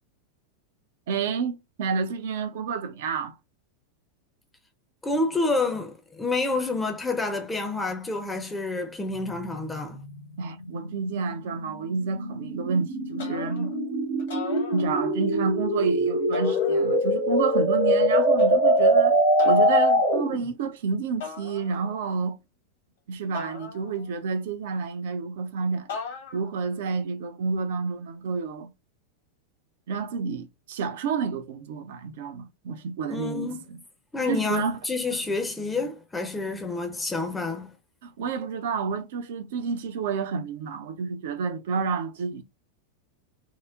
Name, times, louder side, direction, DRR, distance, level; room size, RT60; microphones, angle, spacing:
voice 1, 1.1-3.4 10.4-13.7 14.7-19.2 19.4-22.4 23.1-25.9 26.3-28.7 29.9-33.8 34.3-34.8 38.0-42.4, right 5 dB, 55° right, 0.4 m, -30 dB
voice 2, 5.0-10.0 33.1-33.6 34.1-37.7, left 3 dB, 10° left, 0.6 m, -28 dB
sound 1, 9.2-20.4, equal, 85° left, 1.9 m, -23 dB
sound 2, 13.2-13.8 14.2-15.3 16.3-17.2 18.4-18.9 19.4-19.9 21.2-22.0 23.3-24.3 25.9-26.6, left 5 dB, 60° left, 1.1 m, -39 dB
3.7 x 2.0 x 2.3 m
figure-of-eight pair, 90°, 0 cm